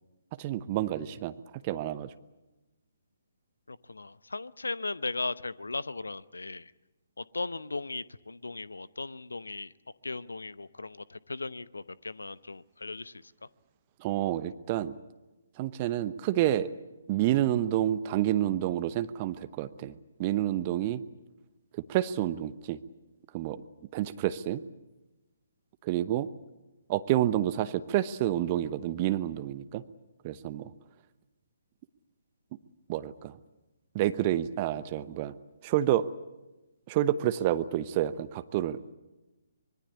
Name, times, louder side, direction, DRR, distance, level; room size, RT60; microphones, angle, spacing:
voice 1, 0.4-1.3 1.6-2.1 14.0-14.9 15.6-16.7 17.1-21.0 21.9-22.8 23.3-23.6 23.9-24.6 25.8-26.3 26.9-29.8 30.2-30.7 32.9-33.4 33.9-35.3 35.6-36.1 36.9-38.8, right 13 dB, 30° right, 12 dB, 0.9 m, -29 dB
voice 2, 3.7-6.7 7.2-9.7 10.0-13.2, left 3 dB, 70° left, 18 dB, 0.8 m, -37 dB
25.0 x 22.0 x 8.4 m, 1.1 s
figure-of-eight pair, 135°, 0 cm